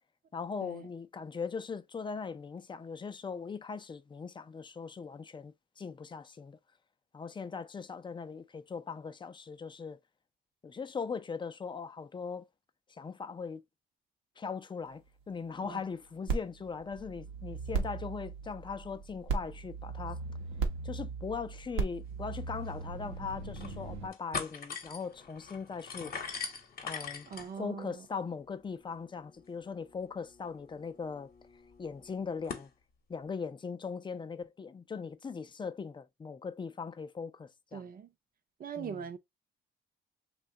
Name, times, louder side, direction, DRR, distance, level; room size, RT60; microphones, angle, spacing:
voice 1, 0.3-6.6 7.1-10.0 10.6-12.5 12.9-13.6 14.4-20.2 20.8-26.1 26.8-27.3 27.6-31.3 31.8-32.7 33.1-37.8 38.8-39.0, left 5 dB, 25° left, 0.4 m, -40 dB
sound 1, 16.3-24.1, right 4 dB, 85° right, 0.7 m, -37 dB
sound 2, 22.3-22.4 22.7-22.8 23.3-23.8 24.1-32.7, left 5 dB, 45° left, 0.8 m, -44 dB
voice 2, 27.3-28.1 37.7-38.1 38.6-39.2, right 7 dB, 45° right, 0.6 m, -41 dB
2.7 x 2.2 x 3.7 m
cardioid pair, 90°, 20 cm